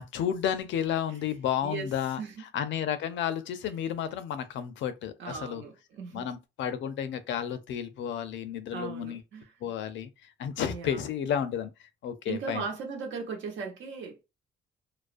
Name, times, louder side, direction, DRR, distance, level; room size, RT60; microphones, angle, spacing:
voice 1, 0.0-5.6 6.1-9.2 9.6-12.6, left 9 dB, 70° left, 0.4 m, -32 dB
voice 2, 5.2-6.3 8.7-9.5 10.7-11.0 12.3-14.2, right 5 dB, 70° right, 0.9 m, -37 dB
2.4 x 2.1 x 2.4 m
cardioid pair, 90°, 20 cm